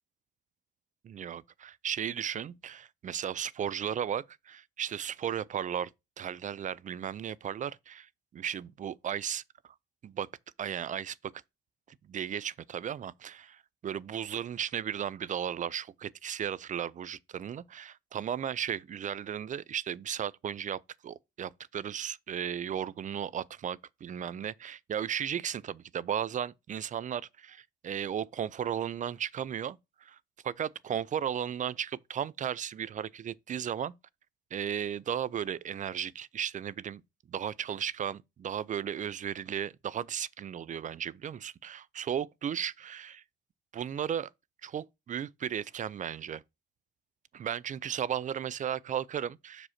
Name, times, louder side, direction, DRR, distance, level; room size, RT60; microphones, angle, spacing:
voice 1, 1.0-5.9 6.2-9.4 10.0-10.3 10.6-11.3 12.1-30.2 30.4-33.9 34.5-37.0 37.3-43.2 43.7-44.3 44.6-46.4 47.3-49.7, right 9 dB, 40° right, 0.4 m, -35 dB
6.2 x 5.0 x 4.2 m
cardioid pair, 90°, 20 cm